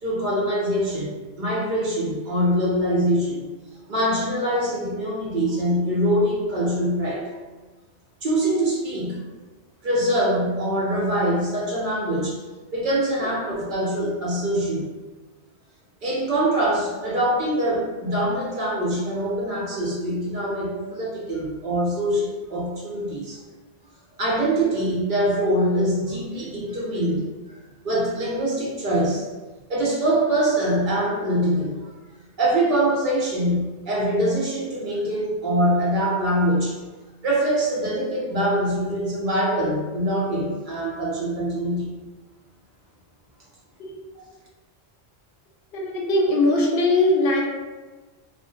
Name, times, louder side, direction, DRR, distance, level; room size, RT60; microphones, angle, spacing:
voice 1, 0.0-3.4 3.9-7.2 8.2-9.2 9.8-12.4 12.7-14.8 16.0-23.4 24.2-27.2 27.8-29.3 29.7-31.9 32.4-36.8 37.2-41.9, right 1 dB, 55° right, -5 dB, 0.8 m, -23 dB
voice 2, 45.8-47.4, left 2 dB, 70° left, -1 dB, 0.8 m, -20 dB
2.4 x 2.1 x 2.4 m, 1.2 s
omnidirectional pair, 1.0 m